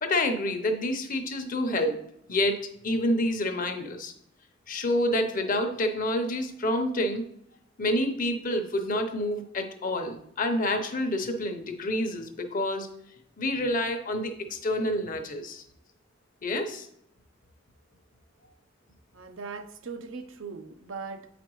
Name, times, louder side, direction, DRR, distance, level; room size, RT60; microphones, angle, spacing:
voice 1, 0.0-2.0 2.3-4.1 4.7-7.3 7.8-12.9 13.4-15.6 16.4-16.9, left 1 dB, 45° left, 6 dB, 0.8 m, -28 dB
voice 2, 19.1-21.3, right 5 dB, 90° right, 6 dB, 0.7 m, -39 dB
8.2 x 5.0 x 3.1 m, 0.73 s
head